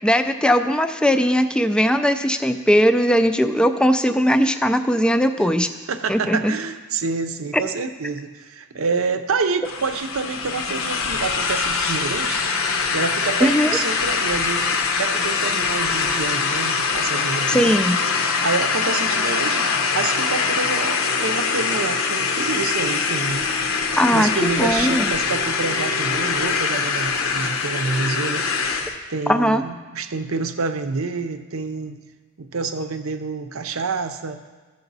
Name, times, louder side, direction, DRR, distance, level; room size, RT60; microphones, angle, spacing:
voice 1, 0.0-5.7 6.1-6.5 13.4-13.8 17.5-18.0 24.0-25.1 29.3-29.6, equal, 5° left, 8 dB, 0.4 m, -19 dB
voice 2, 5.9-12.4 12.9-17.8 18.4-19.7 19.9-23.5 24.1-28.5 29.1-32.0 32.4-34.6, right 4 dB, 70° right, 9 dB, 0.7 m, -27 dB
sound 1, 9.6-29.0, left 5 dB, 70° left, 0.8 m, -23 dB
14.0 x 6.8 x 4.0 m, 1.3 s
head